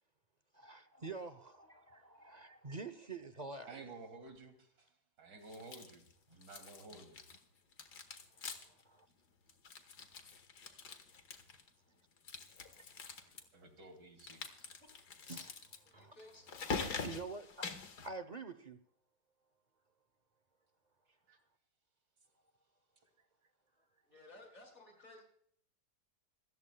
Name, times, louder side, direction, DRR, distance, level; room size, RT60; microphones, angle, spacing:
voice 1, 0.5-3.9 8.8-9.1 12.8-12.9 15.3-15.5 15.9-16.1 16.8-17.7 18.0-18.8, right 3 dB, 35° right, 0.7 m, -47 dB
voice 2, 3.7-4.9 5.2-6.0 6.3-7.2 13.5-14.4 21.3-21.4, right 3 dB, 85° right, 3.3 m, -53 dB
sound 1, 5.5-6.1 6.4-7.4 7.7-8.8 9.1-9.2 9.5-11.7 12.2-13.4 14.2-18.1, left 5 dB, 75° left, 2.1 m, -45 dB
voice 3, 15.9-16.5 24.0-25.2, left 1 dB, 50° left, 6.1 m, -57 dB
26.5 x 14.5 x 2.3 m
omnidirectional pair, 1.8 m